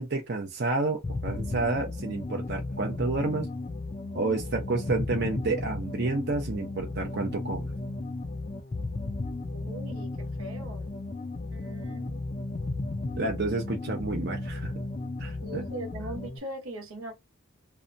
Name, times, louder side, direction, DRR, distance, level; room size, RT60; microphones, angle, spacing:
voice 1, 0.0-3.5 4.1-7.7 13.2-14.7 15.2-15.6, right 3 dB, 50° right, 0.6 m, -30 dB
sound 1, 1.0-16.4, left 2 dB, 30° left, 0.3 m, -35 dB
voice 2, 9.5-10.9 11.5-12.2 15.4-17.1, right 1 dB, 85° right, 0.9 m, -40 dB
2.7 x 2.2 x 2.5 m
head